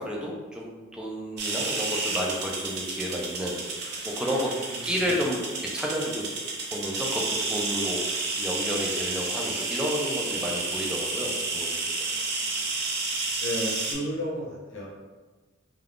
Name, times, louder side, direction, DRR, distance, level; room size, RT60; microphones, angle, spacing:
voice 1, 0.0-4.5 4.8-6.3 6.7-11.8, equal, 5° right, -3 dB, 0.4 m, -31 dB
sound 1, 1.4-13.9, right 3 dB, 50° right, 0.5 m, -31 dB
voice 2, 4.4-4.9 12.0-13.1 13.4-14.9, equal, 65° left, -4 dB, 0.9 m, -35 dB
2.4 x 2.3 x 3.4 m, 1.3 s
head